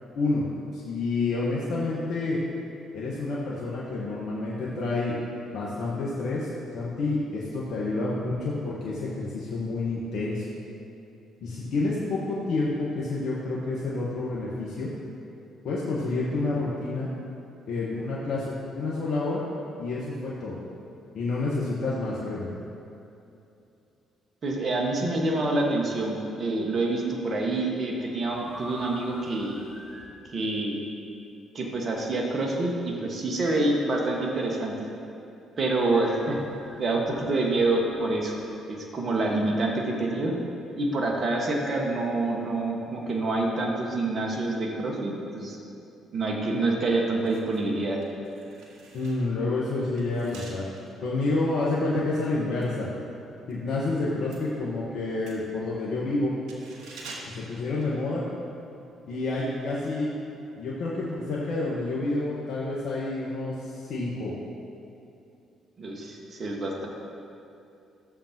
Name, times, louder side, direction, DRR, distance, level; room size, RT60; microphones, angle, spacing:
voice 1, 0.7-2.4 2.9-5.2 5.5-10.5 11.4-14.9 15.6-17.1 17.7-19.4 19.8-20.6 21.1-22.5 48.9-50.7 51.0-52.9 53.5-56.3 57.3-58.2 59.1-60.1 60.6-64.3, left 2 dB, 65° left, -6 dB, 1.4 m, -29 dB
voice 2, 24.4-29.6 30.3-30.9 31.5-34.7 35.6-36.4 36.8-38.3 38.7-40.3 40.8-45.6 46.1-48.0 65.8-66.9, right 2 dB, 50° right, 0 dB, 1.6 m, -27 dB
sound 1, 28.3-30.2 35.9-38.6, equal, 10° right, 2.1 m, -44 dB
sound 2, 47.1-53.6 53.9-58.5 58.8-59.0, right 3 dB, 70° right, 1.3 m, -48 dB
15.0 x 7.2 x 3.0 m, 2.7 s
hypercardioid pair, 55°, 0 cm